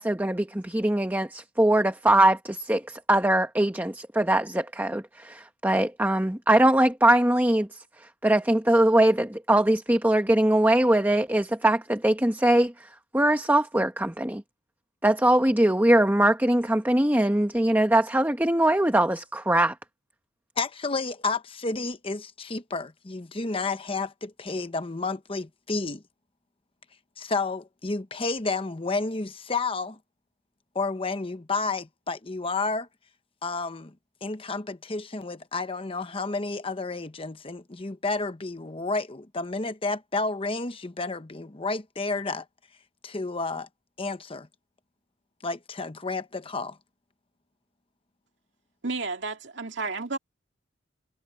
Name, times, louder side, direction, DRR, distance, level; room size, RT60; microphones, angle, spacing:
voice 1, 0.0-7.7 8.2-12.7 13.1-14.4 15.0-19.7, right 1 dB, 10° right, 1.1 m, -22 dB
voice 2, 20.6-26.0 27.2-30.0 30.7-32.9 33.4-33.9 34.2-42.4 43.0-43.7 44.0-44.5 45.4-46.8, left 3 dB, 30° left, 0.9 m, -31 dB
voice 3, 48.8-50.2, right 3 dB, 65° right, 2.4 m, -31 dB
head